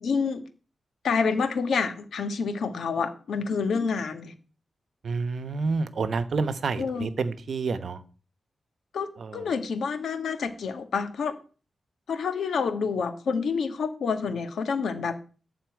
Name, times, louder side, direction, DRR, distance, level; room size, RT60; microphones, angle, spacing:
voice 1, 0.0-0.4 1.0-4.3 6.8-7.1 8.9-11.4 12.1-15.2, left 5 dB, 80° left, 8 dB, 1.4 m, -28 dB
voice 2, 5.0-8.0 9.2-9.4, right 4 dB, 60° right, 12 dB, 1.0 m, -29 dB
12.5 x 4.2 x 8.3 m, 0.37 s
wide cardioid pair, 140°, 0 cm